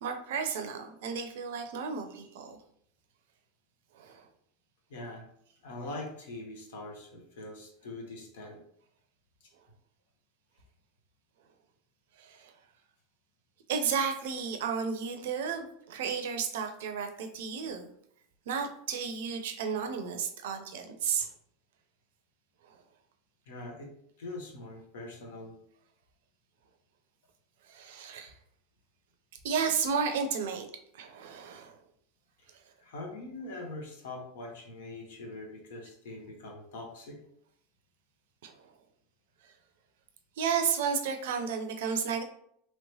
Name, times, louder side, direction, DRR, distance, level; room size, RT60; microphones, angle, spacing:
voice 1, 0.0-2.6 3.9-4.2 12.2-12.5 13.7-17.9 18.5-21.3 27.7-28.3 29.4-30.7 30.9-31.8 38.4-38.5 40.4-42.2, right 6 dB, 70° right, 5 dB, 0.5 m, -32 dB
voice 2, 4.9-5.2 5.6-8.6 23.5-23.9 24.2-25.5 32.8-37.2, left 2 dB, 70° left, 1 dB, 0.9 m, -42 dB
3.1 x 3.0 x 2.7 m, 0.69 s
hypercardioid pair, 90°, 0 cm